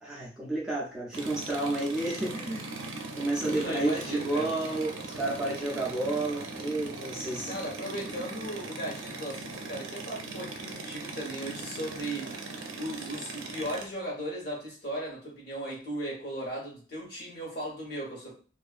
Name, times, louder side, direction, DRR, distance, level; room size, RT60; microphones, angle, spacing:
voice 1, 0.0-2.7 3.2-7.5, right 2 dB, 5° right, -5 dB, 0.4 m, -31 dB
sound 1, 1.1-13.9, right 3 dB, 70° right, 0.5 m, -40 dB
voice 2, 3.4-4.5 7.4-18.3, right 1 dB, 50° left, -3 dB, 1.1 m, -37 dB
2.6 x 2.4 x 2.4 m, 0.40 s
head